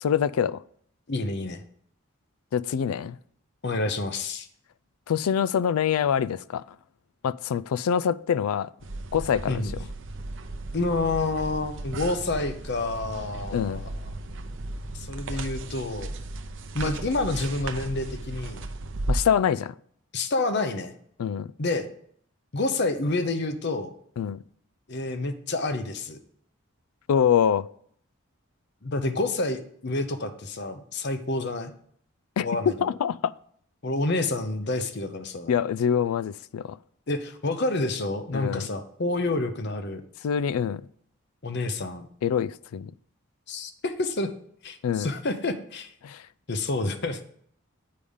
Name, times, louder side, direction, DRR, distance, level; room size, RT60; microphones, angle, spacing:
voice 1, 0.0-0.6 2.5-3.2 5.1-6.6 7.2-8.7 9.1-9.6 13.5-13.8 19.1-19.7 21.2-21.5 24.2-24.4 27.1-27.7 32.4-32.5 32.8-33.3 35.5-36.8 38.3-38.7 40.2-40.8 42.2-42.9 44.8-45.1 46.0-46.2, left 8 dB, 90° left, 0.3 m, -25 dB
voice 2, 1.1-1.6 3.6-4.5 9.5-9.7 10.7-13.9 14.9-16.1 16.7-18.7 20.1-20.9 21.6-21.9 22.5-23.9 24.9-26.2 28.8-31.7 32.4-32.9 33.8-35.5 37.1-40.0 41.4-42.1 43.5-44.3 44.6-45.9 46.5-47.2, left 2 dB, 50° left, 0.8 m, -28 dB
sound 1, 8.8-19.2, right 2 dB, 60° right, 0.6 m, -35 dB
8.6 x 5.0 x 5.4 m
head